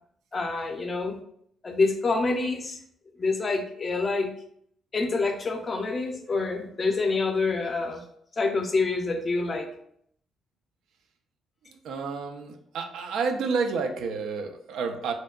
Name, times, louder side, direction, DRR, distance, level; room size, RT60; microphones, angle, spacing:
voice 1, 0.3-1.2 1.6-2.8 3.2-4.3 4.9-8.0 8.4-9.7, left 3 dB, 35° left, 4 dB, 0.4 m, -27 dB
voice 2, 11.7-15.1, right 5 dB, 80° right, 5 dB, 0.3 m, -30 dB
2.6 x 2.1 x 2.3 m, 0.66 s
cardioid pair, 90°, 0 cm